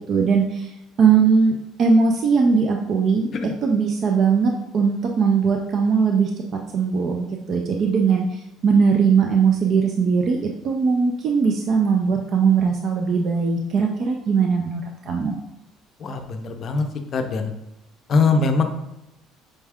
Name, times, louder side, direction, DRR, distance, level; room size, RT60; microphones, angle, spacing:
voice 1, 0.1-0.7 1.0-3.3 3.6-6.3 6.7-15.4, right 5 dB, 45° right, 2 dB, 0.4 m, -20 dB
voice 2, 16.0-16.9 17.1-17.5 18.1-18.6, left 4 dB, 40° left, 5 dB, 0.5 m, -21 dB
5.3 x 2.3 x 3.4 m, 0.87 s
cardioid pair, 140°, 0 cm